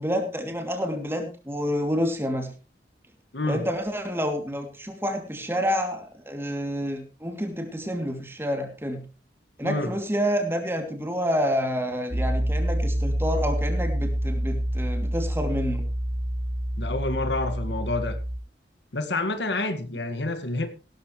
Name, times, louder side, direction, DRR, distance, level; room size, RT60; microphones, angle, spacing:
voice 1, 0.0-2.5 3.5-9.0 9.6-15.8, equal, 15° right, 2.8 m, -28 dB
voice 2, 3.3-3.6 9.6-9.9 16.8-18.2 18.9-20.7, left 2 dB, 90° left, 1.8 m, -28 dB
Piano, 12.1-18.4, equal, 45° right, 6.1 m, -27 dB
17.0 x 12.5 x 3.2 m
head